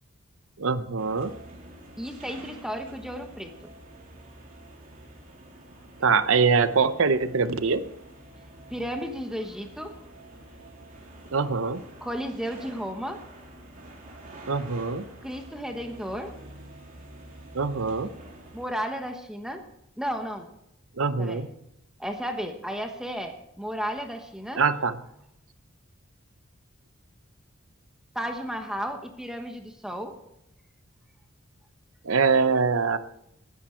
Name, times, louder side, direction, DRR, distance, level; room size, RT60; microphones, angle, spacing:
voice 1, 0.6-1.3 6.0-7.8 11.3-11.8 14.5-15.0 17.5-18.1 21.0-21.5 24.5-25.0 32.0-33.0, right 5 dB, 80° right, 12 dB, 0.9 m, -23 dB
sound 1, 1.0-18.7, right 1 dB, 40° right, 3.3 m, -47 dB
voice 2, 2.0-3.5 8.7-10.0 12.0-13.2 15.2-16.3 18.5-19.6 20.0-20.5 21.2-21.5 22.0-24.6 28.1-30.1, equal, 5° right, 5 dB, 1.1 m, -33 dB
20.5 x 10.5 x 4.5 m, 0.80 s
head